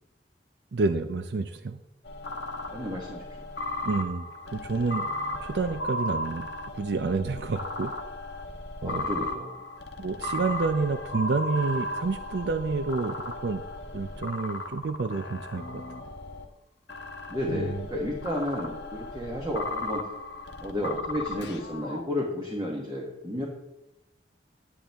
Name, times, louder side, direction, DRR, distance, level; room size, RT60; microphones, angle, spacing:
voice 1, 0.7-1.8 3.8-6.5 6.7-7.9 8.8-9.0 10.0-13.6 13.9-15.8 17.5-17.8, right 3 dB, 65° right, 10 dB, 0.5 m, -29 dB
sound 1, 2.0-16.4 16.9-22.0, left 1 dB, 70° left, 1.1 m, -36 dB
voice 2, 2.7-3.2 8.8-9.5 17.3-20.0 20.6-23.5, left 1 dB, 25° right, -2 dB, 1.2 m, -32 dB
10.5 x 9.9 x 3.4 m, 0.93 s
head